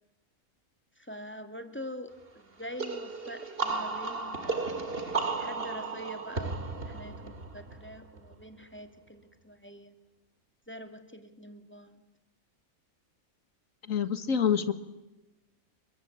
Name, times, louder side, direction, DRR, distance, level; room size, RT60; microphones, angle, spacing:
voice 1, 1.0-4.9 5.4-9.9 10.7-12.0, equal, 10° left, 7 dB, 2.4 m, -44 dB
sound 1, 2.8-8.3, right 3 dB, 45° right, 2.3 m, -34 dB
voice 2, 13.9-14.7, left 7 dB, 75° left, 11 dB, 1.8 m, -26 dB
29.5 x 22.0 x 8.8 m, 1.0 s
omnidirectional pair, 1.4 m